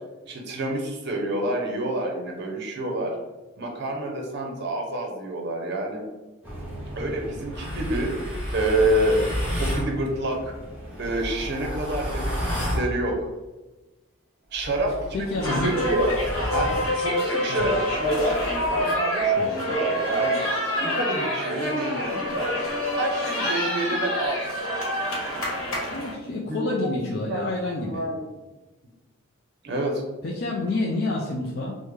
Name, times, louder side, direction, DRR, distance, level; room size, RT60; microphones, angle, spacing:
voice 1, 0.2-3.2 3.6-6.1 6.9-8.1 8.5-9.3 9.6-10.5 11.0-13.2 14.5-16.1 16.5-18.3 18.7-20.4 20.8-22.5 22.9-24.4 26.5-26.6 27.0-28.2 29.6-30.0, right 1 dB, 50° right, 1 dB, 0.6 m, -28 dB
sound 1, 6.4-11.5, equal, 10° right, 0.7 m, -40 dB
sound 2, 7.5-9.9 10.8-12.9 14.5-16.9 17.6-21.0, right 1 dB, 10° left, 1.5 m, -30 dB
voice 2, 15.1-15.8 17.5-17.7 19.4-19.5 23.8-24.0 25.9-28.0 30.2-31.8, left 2 dB, 50° left, -3 dB, 0.4 m, -28 dB
sound 3, 15.4-26.1, left 1 dB, 75° left, 1.0 m, -28 dB
3.5 x 2.1 x 3.1 m, 1.1 s
head